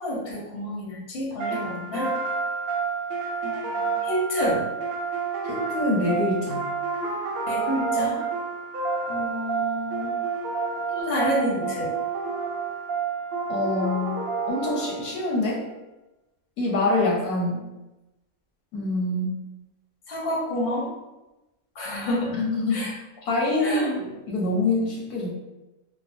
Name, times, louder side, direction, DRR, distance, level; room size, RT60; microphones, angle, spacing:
voice 1, 0.0-2.1 3.4-4.6 7.5-8.2 9.1-10.1 10.9-11.9 20.1-20.9 21.8-22.3 22.7-22.9 23.6-23.9, left 1 dB, 50° left, -4 dB, 0.8 m, -29 dB
sound 1, 1.4-15.3, right 5 dB, 70° right, 1.1 m, -29 dB
voice 2, 5.5-6.7 13.5-14.2 14.5-15.6 16.6-17.6 18.7-19.4 22.3-22.9 23.2-25.3, left 2 dB, 85° left, -3 dB, 1.3 m, -25 dB
3.3 x 2.1 x 2.5 m, 1.0 s
omnidirectional pair, 1.6 m